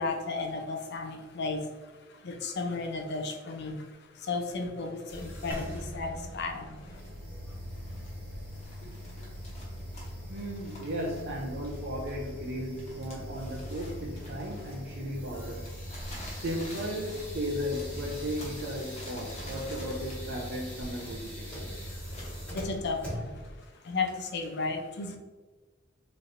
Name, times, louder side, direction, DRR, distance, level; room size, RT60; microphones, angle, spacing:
voice 1, 0.0-7.0 22.5-23.4 23.8-25.2, left 3 dB, 60° left, 4 dB, 0.6 m, -34 dB
sound 1, 5.1-23.5, equal, 5° left, 1.2 m, -41 dB
sound 2, 5.5-9.5, equal, 10° right, 0.5 m, -46 dB
sound 3, 6.8-7.2 7.5-8.2 8.5-12.4 12.7-24.5, left 1 dB, 35° left, 1.2 m, -50 dB
voice 2, 10.3-15.8 16.3-21.8, equal, 55° right, -2 dB, 0.6 m, -36 dB
4.1 x 3.1 x 2.6 m, 1.3 s
head